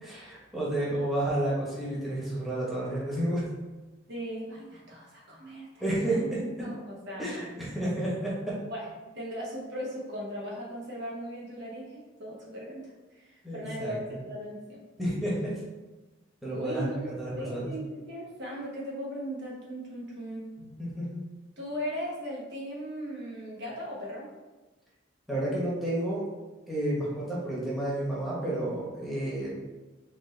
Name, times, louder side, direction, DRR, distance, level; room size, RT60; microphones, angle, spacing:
voice 1, 0.0-3.4 5.8-6.4 7.2-8.3 13.4-14.2 15.0-15.6 16.4-17.7 20.6-21.2 25.3-26.2 26.7-29.6, right 1 dB, ahead, -7 dB, 1.1 m, -31 dB
voice 2, 4.1-5.7 6.0-6.3 6.6-7.4 7.8-7.9 8.7-8.8 9.1-14.8 16.4-17.1 17.4-20.5 21.6-24.3, equal, 65° right, -4 dB, 1.1 m, -38 dB
4.1 x 3.1 x 3.3 m, 1.2 s
head